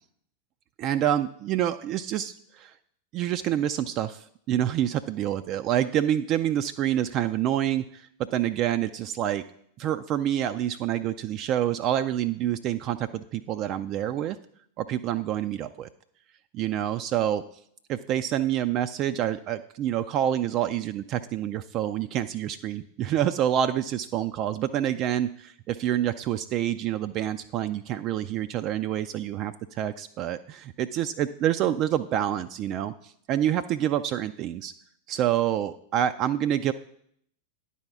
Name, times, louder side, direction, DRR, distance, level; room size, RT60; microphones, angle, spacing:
voice 1, 0.8-2.7 3.1-9.4 9.8-14.4 14.8-15.9 16.5-17.4 17.9-34.7 35.1-36.7, right 11 dB, 35° right, 10 dB, 0.3 m, -27 dB
10.0 x 4.2 x 5.9 m, 0.67 s
figure-of-eight pair, 90°, 0 cm